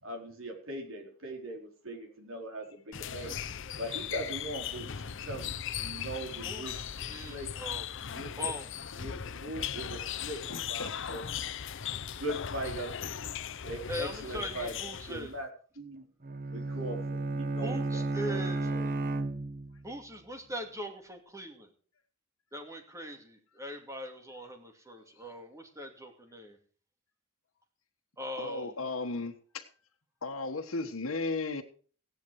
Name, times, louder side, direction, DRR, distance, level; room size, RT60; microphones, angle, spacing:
voice 1, 0.0-3.4 3.8-5.5 5.8-6.8 7.3-7.5 8.1-8.5 9.0-11.2 12.2-12.9 13.6-15.5 15.8-16.0 16.5-18.4 18.6-18.9, right 1 dB, 75° right, 3 dB, 4.0 m, -40 dB
sound 1, 2.9-15.4, left 8 dB, 65° left, 0.8 m, -38 dB
voice 2, 6.4-7.9 8.4-8.7 13.9-15.3 17.6-18.7 19.8-21.7 22.5-26.6 28.2-28.7, equal, 15° right, 4 dB, 2.5 m, -41 dB
voice 3, 10.5-11.2 28.4-29.7 30.2-31.6, left 3 dB, 85° left, 2 dB, 1.4 m, -35 dB
Bowed string instrument, 16.2-19.9, right 2 dB, 45° right, 1.4 m, -33 dB
16.0 x 10.5 x 4.9 m, 0.42 s
head